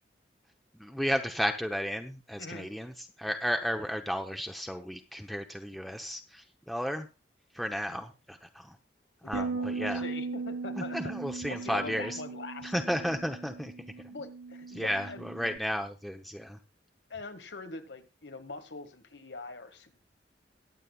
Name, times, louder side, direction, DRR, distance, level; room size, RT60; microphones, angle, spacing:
voice 1, 0.8-7.1 7.5-8.8 9.2-10.0 10.8-12.2 12.6-13.7 14.7-16.6, equal, ahead, 4 dB, 0.8 m, -33 dB
voice 2, 2.4-2.7 9.2-11.1 11.5-12.7 14.1-15.3 17.1-20.0, left 3 dB, 85° left, 8 dB, 1.8 m, -43 dB
Bass guitar, 9.3-15.6, right 4 dB, 60° right, 1.0 m, -38 dB
21.5 x 8.4 x 2.3 m, 0.30 s
head